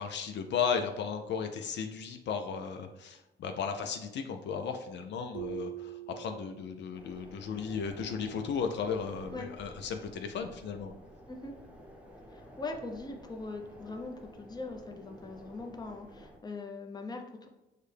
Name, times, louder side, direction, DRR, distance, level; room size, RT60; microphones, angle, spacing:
voice 1, 0.0-10.9, left 6 dB, 65° left, 5 dB, 0.4 m, -35 dB
sound 1, 5.3-7.0, right 13 dB, 75° right, 0.5 m, -42 dB
sound 2, 6.9-16.4, equal, 5° right, 0.8 m, -52 dB
voice 2, 12.3-17.5, left 3 dB, 20° left, 3 dB, 0.6 m, -41 dB
6.5 x 2.2 x 3.3 m, 0.98 s
cardioid pair, 90°, 20 cm